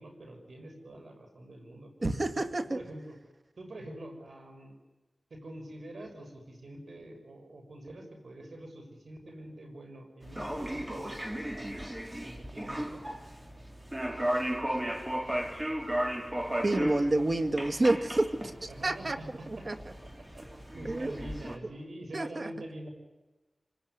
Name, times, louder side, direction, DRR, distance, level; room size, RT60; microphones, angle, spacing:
voice 1, 0.0-1.9 2.3-3.1 3.6-4.7 5.3-13.1 18.7-19.7 20.0-20.4 20.7-22.9, right 1 dB, 85° right, 4 dB, 6.4 m, -46 dB
voice 2, 2.0-2.8 16.6-19.2 19.5-19.8 20.8-21.2 22.1-22.5, right 2 dB, 55° right, 9 dB, 2.1 m, -29 dB
sound 1, 10.2-21.6, right 1 dB, 25° right, 4.0 m, -35 dB
27.0 x 20.0 x 9.8 m, 1.1 s
cardioid pair, 40°, 0 cm